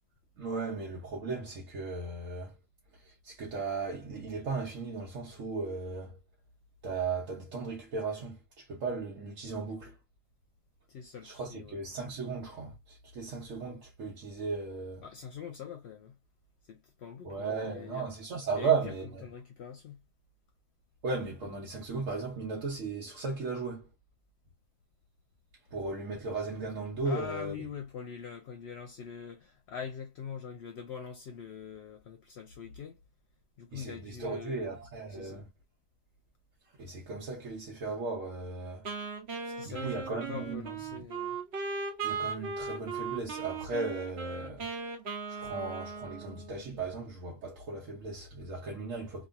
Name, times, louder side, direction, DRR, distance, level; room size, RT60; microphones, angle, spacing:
voice 1, 0.4-2.5 2.9-6.2 6.8-10.0 11.2-15.0 17.2-19.2 21.0-23.9 25.7-27.5 33.7-35.5 36.8-38.9 39.6-40.7 42.0-44.7 45.3-49.3, right 4 dB, 75° right, 1.2 m, -36 dB
voice 2, 10.9-11.8 15.0-16.2 16.6-18.1 18.5-20.0 27.0-33.0 33.6-34.8 35.1-35.5 39.4-41.4, left 7 dB, 65° left, 0.8 m, -43 dB
Wind instrument woodwind instrument, 38.9-46.8, right 5 dB, 55° right, 1.0 m, -38 dB
2.9 x 2.5 x 2.3 m
omnidirectional pair, 1.4 m